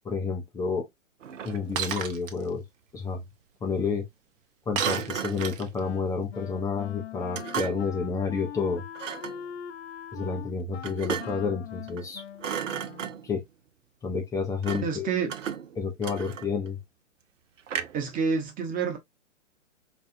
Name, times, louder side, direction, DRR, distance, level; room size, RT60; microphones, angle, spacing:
voice 1, 0.0-0.9 1.4-2.6 2.9-3.2 3.6-4.0 4.7-8.8 10.1-12.2 13.2-13.4 14.0-15.1 15.8-16.8, left 5 dB, 10° left, 0.4 m, -30 dB
Thump thud, 1.2-2.0 4.8-5.7 7.3-8.0 8.9-9.4 10.8-11.5 11.9-12.1 12.4-13.4 14.6-15.0 15.3-16.7 17.7-18.1, right 8 dB, 85° right, 0.6 m, -35 dB
Shatter, 1.8-2.3 4.8-5.8, right 8 dB, 50° right, 0.8 m, -31 dB
Wind instrument woodwind instrument, 5.8-13.3, left 9 dB, 60° left, 0.5 m, -42 dB
voice 2, 14.8-15.3 17.9-19.0, right 5 dB, 20° right, 1.0 m, -28 dB
4.3 x 2.3 x 2.5 m
figure-of-eight pair, 115°, 37 cm